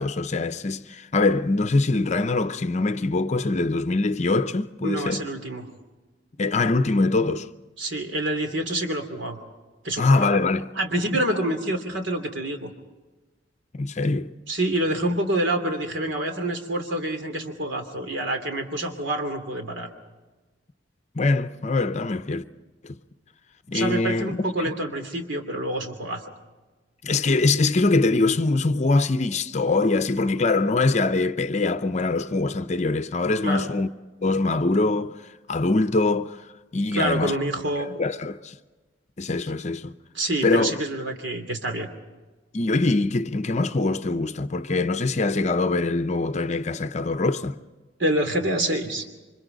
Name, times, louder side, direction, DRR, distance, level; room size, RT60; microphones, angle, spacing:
voice 1, 0.0-5.2 6.4-7.5 10.0-10.7 13.7-14.3 21.1-22.4 22.8-23.0 23.7-24.4 27.0-33.9 34.2-35.2 35.5-37.3 37.8-38.6 39.2-39.9 40.4-40.7 42.5-47.6, left 3 dB, 35° left, 0.7 m, -23 dB
voice 2, 4.8-5.6 7.8-9.4 9.8-10.3 10.7-12.7 14.5-19.9 23.7-26.2 33.4-33.7 36.9-37.9 40.1-41.9 48.0-49.1, right 1 dB, 75° right, 2.9 m, -27 dB
29.0 x 25.0 x 4.0 m
head